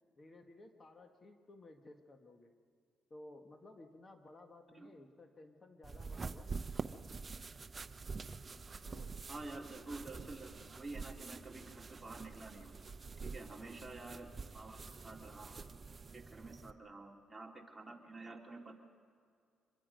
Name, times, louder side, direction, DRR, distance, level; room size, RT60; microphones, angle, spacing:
voice 1, 0.2-2.5 3.1-6.5 8.8-9.1 13.4-13.8, left 2 dB, 35° left, 5 dB, 1.5 m, -57 dB
sound 1, 5.8-16.7, right 4 dB, 30° right, 0.7 m, -46 dB
voice 2, 9.3-12.7 13.2-14.8 15.0-15.6 16.1-18.8, right 2 dB, 15° right, 0 dB, 2.7 m, -49 dB
25.5 x 22.0 x 5.3 m, 2.2 s
cardioid pair, 90°, 0 cm